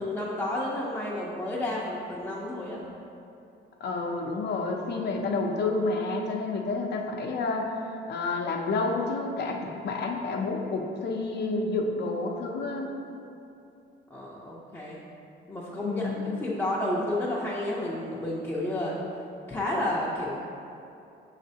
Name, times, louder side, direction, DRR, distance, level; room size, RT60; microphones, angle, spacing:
voice 1, 0.0-2.8 14.1-15.0 15.5-19.0 19.5-20.4, left 1 dB, 15° left, -7 dB, 0.6 m, -31 dB
voice 2, 3.8-7.8 8.1-12.9 15.8-16.4, left 3 dB, 60° left, 1 dB, 0.6 m, -29 dB
5.8 x 3.2 x 2.7 m, 2.7 s
cardioid pair, 90°, 20 cm